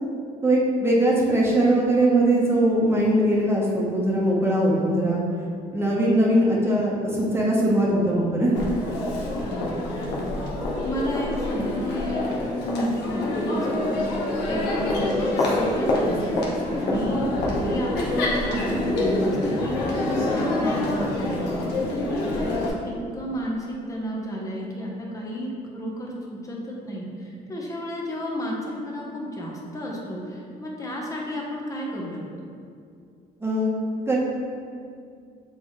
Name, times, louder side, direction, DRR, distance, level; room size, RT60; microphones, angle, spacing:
voice 1, 0.4-5.2 5.7-8.5 33.4-33.7 34.1-34.2, right 1 dB, 15° right, -5 dB, 1.1 m, -21 dB
Crowd, 8.6-22.7, left 1 dB, 85° left, 1.2 m, -26 dB
voice 2, 9.4-9.8 10.6-12.3 12.6-14.1 14.4-16.4 16.8-32.5, equal, 20° left, -2 dB, 1.1 m, -32 dB
7.0 x 4.2 x 3.2 m, 2.3 s
cardioid pair, 110°, 17 cm